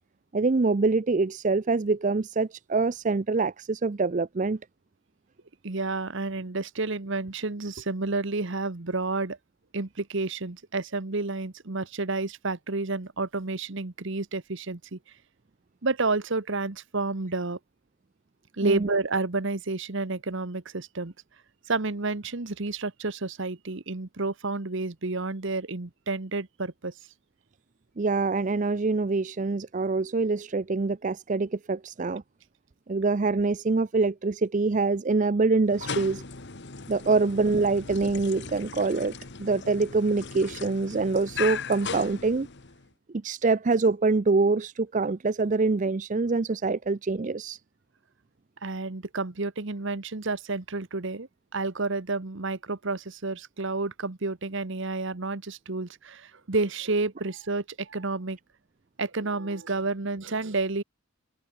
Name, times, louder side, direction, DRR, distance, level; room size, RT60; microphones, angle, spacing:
voice 1, 0.3-4.6 18.6-18.9 28.0-32.2 32.9-36.2 36.9-39.1 39.4-42.5 43.2-47.6, right 3 dB, 35° right, 0.5 m, -25 dB
voice 2, 5.6-9.4 9.7-15.0 15.8-17.6 18.5-21.1 21.7-26.9 48.6-58.4 59.0-60.8, right 3 dB, 55° right, 1.2 m, -30 dB
sound 1, 35.7-42.9, left 5 dB, 50° left, 1.4 m, -38 dB
head